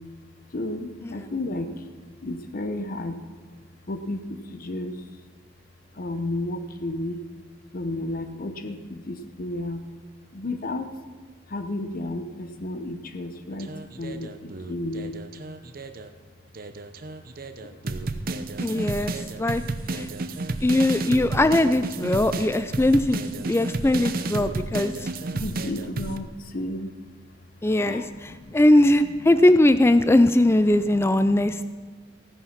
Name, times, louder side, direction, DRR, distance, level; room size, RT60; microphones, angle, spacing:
voice 1, 0.5-1.8 2.2-3.2 3.9-5.0 5.9-7.2 7.7-9.9 10.3-10.9 11.5-15.1 19.0-20.2 21.1-21.2 22.7-22.8 23.1-23.2 23.5-23.8 24.5-26.9 27.8-28.6 29.1-29.6 30.0-31.6, left 1 dB, 45° left, 9 dB, 0.8 m, -33 dB
sound 1, 13.5-16.1 16.5-26.2, right 2 dB, 50° right, 0.7 m, -32 dB
voice 2, 18.6-19.1 19.4-19.6 19.9-20.1 20.6-25.1 27.6-28.0 28.5-31.6, left 1 dB, 15° left, 12 dB, 0.3 m, -20 dB
15.5 x 9.8 x 5.9 m, 1.4 s
head